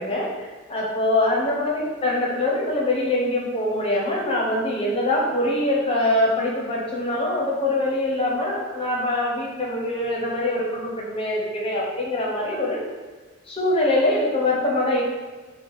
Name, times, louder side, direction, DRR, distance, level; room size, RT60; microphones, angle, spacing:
voice 1, 0.0-12.8 13.5-15.0, left 1 dB, 25° left, -3 dB, 1.0 m, -23 dB
5.2 x 2.4 x 4.2 m, 1.3 s
head